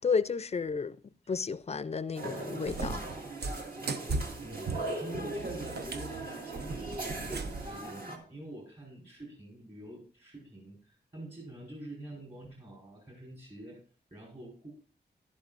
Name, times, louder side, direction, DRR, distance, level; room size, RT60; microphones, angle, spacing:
voice 1, 0.0-3.0, left 5 dB, 40° left, 0.4 m, -32 dB
sound 1, 2.1-8.2, right 2 dB, 55° right, 2.0 m, -39 dB
Cat, 2.7-7.8, right 3 dB, 75° right, 0.8 m, -37 dB
voice 2, 4.4-13.8 14.1-14.7, right 1 dB, 35° right, 4.7 m, -46 dB
11.5 x 11.5 x 2.5 m
wide cardioid pair, 130°, 17 cm